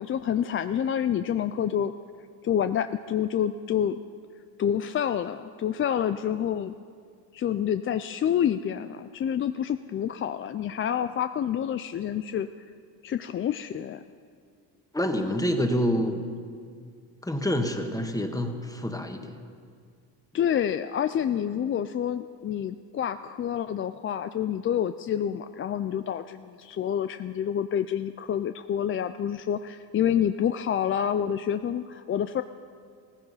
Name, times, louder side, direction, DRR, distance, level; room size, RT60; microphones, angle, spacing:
voice 1, 0.0-1.9 2.4-4.0 4.6-6.7 7.3-12.5 13.0-14.0 20.3-32.4, left 9 dB, 30° left, 10 dB, 0.4 m, -28 dB
voice 2, 14.9-16.2 17.2-19.3, equal, 5° left, 5 dB, 1.5 m, -27 dB
16.5 x 15.0 x 5.6 m, 2.2 s
supercardioid pair, 90°, 47 cm